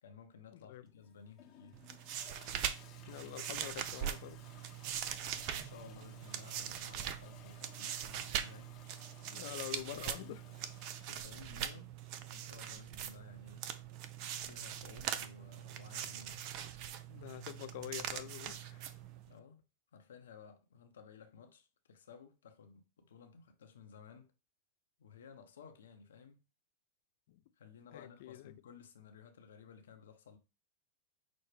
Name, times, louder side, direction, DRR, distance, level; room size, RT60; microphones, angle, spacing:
voice 1, 0.0-1.8 5.2-8.7 9.3-9.6 9.8-10.3 11.1-11.9 12.3-13.7 14.4-16.5 19.3-19.6 19.9-24.3 25.0-26.4 27.6-30.4, left 6 dB, 75° left, 0.8 m, -56 dB
voice 2, 0.5-0.8 3.1-4.5 9.3-10.4 17.1-18.9 27.3-27.4 27.9-28.5, left 15 dB, 60° left, 0.4 m, -46 dB
Toilet flush, 0.9-11.9, left 9 dB, 40° left, 0.8 m, -60 dB
sound 1, 1.7-19.3, right 9 dB, 50° right, 0.5 m, -42 dB
6.2 x 2.1 x 3.2 m
hypercardioid pair, 105°, 0 cm